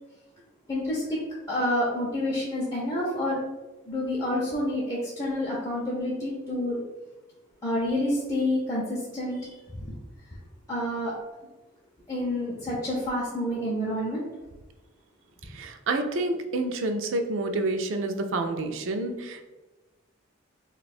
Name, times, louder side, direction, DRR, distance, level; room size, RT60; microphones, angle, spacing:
voice 1, 0.7-1.2 1.5-3.4 3.9-6.8 7.6-9.9 10.7-11.1 12.1-14.2, left 1 dB, 15° left, -6 dB, 0.5 m, -28 dB
voice 2, 15.4-19.4, right 2 dB, 70° right, 6 dB, 0.4 m, -28 dB
2.6 x 2.3 x 4.1 m, 1.1 s
head